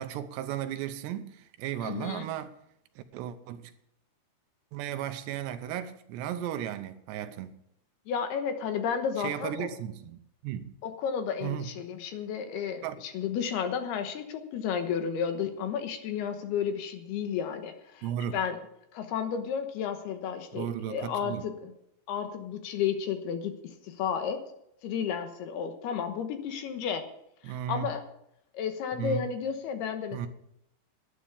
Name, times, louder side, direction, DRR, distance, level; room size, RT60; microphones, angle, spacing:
voice 1, 0.0-2.6 3.0-3.7 4.7-7.6 9.2-10.8 11.4-11.8 12.8-13.0 18.0-18.4 20.5-21.4 27.4-27.9 29.0-29.3 30.1-30.3, right 10 dB, 85° right, 3.0 m, -35 dB
voice 2, 1.8-2.3 8.1-9.7 10.8-18.1 18.3-18.6 18.9-21.7 22.1-24.4 24.8-27.0 27.4-28.0 28.5-30.3, left 7 dB, 70° left, 3.0 m, -32 dB
11.5 x 10.0 x 6.9 m
omnidirectional pair, 5.0 m